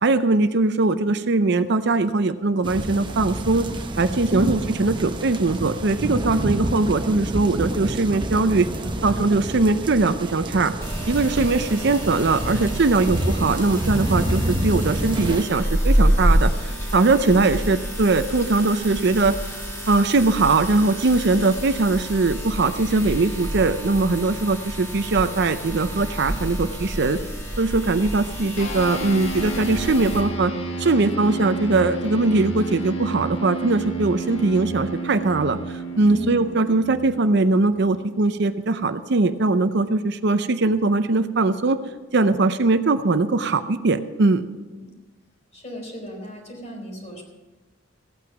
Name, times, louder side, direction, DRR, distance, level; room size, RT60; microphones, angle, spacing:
voice 1, 0.0-3.7 4.0-8.7 9.0-10.7 11.1-19.4 19.9-27.2 27.6-30.5 30.8-41.8 42.1-44.4, right 3 dB, 60° right, 10 dB, 0.6 m, -21 dB
sound 1, 2.6-15.5, right 1 dB, 25° right, 0.8 m, -28 dB
sound 2, 10.8-30.2, equal, 15° left, 2.1 m, -28 dB
sound 3, 28.6-38.3, right 3 dB, 75° left, 1.7 m, -31 dB
voice 2, 45.5-47.2, right 2 dB, 35° left, 0 dB, 3.8 m, -33 dB
16.0 x 8.9 x 6.0 m, 1.2 s
head